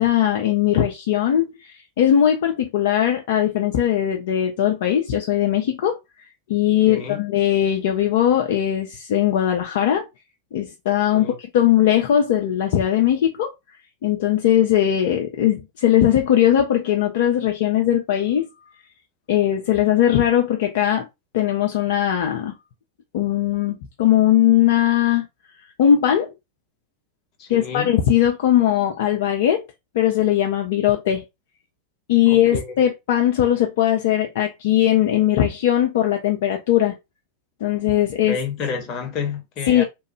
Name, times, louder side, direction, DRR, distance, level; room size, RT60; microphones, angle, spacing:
voice 1, 0.0-6.0 6.5-10.1 10.5-13.5 14.0-18.5 19.3-21.1 21.3-22.6 23.1-25.3 25.8-26.3 27.5-29.6 29.9-31.2 32.1-37.0 37.6-38.4 39.7-39.8, left 11 dB, 55° left, 0.5 m, -19 dB
voice 2, 6.9-7.2 11.1-11.4 27.4-27.9 32.3-32.7 38.3-39.8, left 6 dB, 35° left, 0.9 m, -30 dB
2.9 x 2.2 x 3.0 m
figure-of-eight pair, 90°, 0 cm